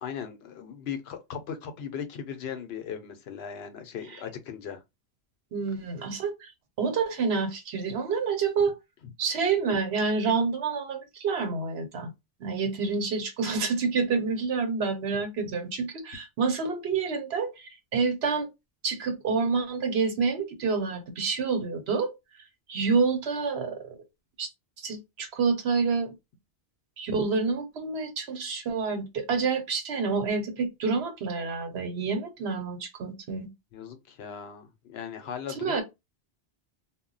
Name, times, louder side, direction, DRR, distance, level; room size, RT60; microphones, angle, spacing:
voice 1, 0.0-4.8 9.0-9.1 33.7-35.8, left 8 dB, 75° left, 0.9 m, -38 dB
voice 2, 5.5-6.5 6.8-8.7 9.2-12.1 12.4-18.5 18.8-22.1 22.7-24.0 24.4-24.5 24.8-26.1 27.0-33.5 35.6-35.8, right 5 dB, 80° right, 1.0 m, -28 dB
2.1 x 2.1 x 3.8 m
omnidirectional pair, 1.1 m